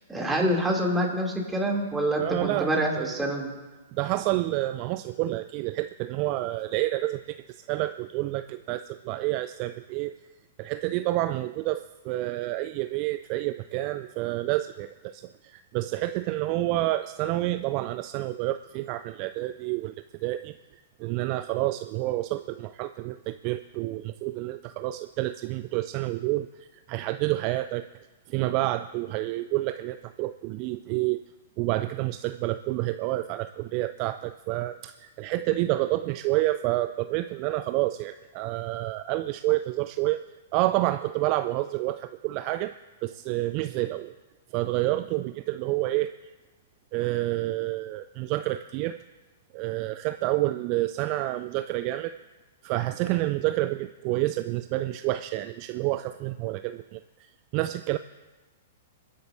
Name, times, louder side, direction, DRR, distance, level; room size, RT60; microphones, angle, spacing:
voice 1, 0.1-3.5, right 1 dB, 10° right, -1 dB, 2.9 m, -26 dB
voice 2, 2.2-2.7 3.0-3.2 3.9-10.2 10.6-19.9 20.2-20.5 21.0-27.9 28.3-31.2 31.6-40.2 40.5-42.7 43.0-44.1 44.5-46.2 46.9-49.0 49.5-52.2 52.6-57.0 57.5-58.0, right 17 dB, 40° right, 11 dB, 0.3 m, -29 dB
28.5 x 10.0 x 2.7 m, 1.2 s
figure-of-eight pair, 110°, 0 cm